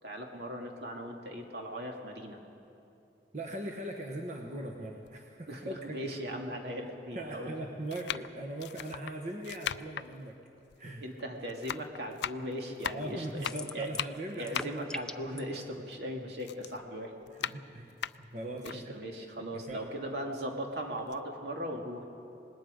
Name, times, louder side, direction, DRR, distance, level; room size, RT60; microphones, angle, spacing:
voice 1, 0.0-2.4 5.5-7.5 11.0-13.9 14.3-17.1 18.6-22.0, equal, 70° right, 1 dB, 2.4 m, -39 dB
voice 2, 3.3-6.4 7.1-10.4 10.8-11.0 12.9-15.0 17.3-17.9 18.2-18.9 19.4-19.9, right 1 dB, 40° right, 1 dB, 1.2 m, -40 dB
sound 1, 5.1-5.2 6.0-6.1 7.1-7.4 7.9-11.2 11.5-16.1 16.4-18.8 19.3-19.4 19.7-20.6 21.0-21.2, left 9 dB, 75° left, 0.4 m, -39 dB
sound 2, 13.4-14.1 14.4-15.4, left 2 dB, 5° left, 0.4 m, -41 dB
26.0 x 20.0 x 5.1 m, 2.7 s
head